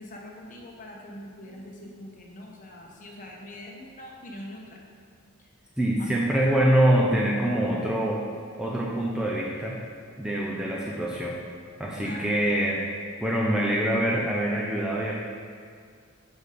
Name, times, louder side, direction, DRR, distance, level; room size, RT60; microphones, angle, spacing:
voice 1, 0.0-4.8 5.4-5.5 6.0-6.1 12.0-12.2, left 1 dB, 40° left, -1 dB, 1.1 m, -43 dB
voice 2, 5.8-8.2 8.6-9.8 10.2-11.4 11.8-12.8 13.2-15.1, right 1 dB, 5° right, -4 dB, 0.5 m, -24 dB
6.3 x 5.4 x 4.9 m, 2.1 s
head